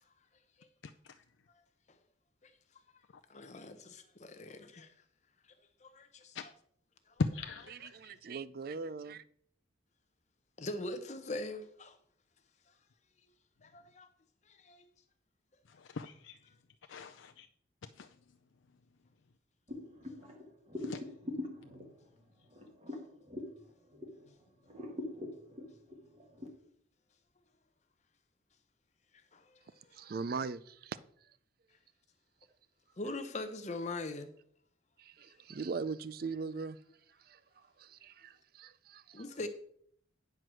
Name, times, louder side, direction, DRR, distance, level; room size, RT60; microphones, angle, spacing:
voice 1, 3.3-4.9 5.8-6.5 7.1-7.2 10.6-12.0 13.6-14.1 14.5-14.9 29.3-29.6 29.8-30.0 33.0-34.3 39.1-39.5, left 2 dB, 35° left, 0.7 m, -42 dB
voice 2, 7.2-8.1 15.7-16.4 16.9-17.5 17.8-18.2 20.2-20.3 20.8-21.0, left 4 dB, 75° left, 0.5 m, -39 dB
voice 3, 7.9-9.2 29.9-31.0 35.0-36.8 37.3-39.2, right 4 dB, 50° right, 0.4 m, -40 dB
sound 1, 19.7-24.3 24.6-26.5, left 2 dB, 30° right, 1.4 m, -43 dB
9.6 x 4.5 x 6.2 m
head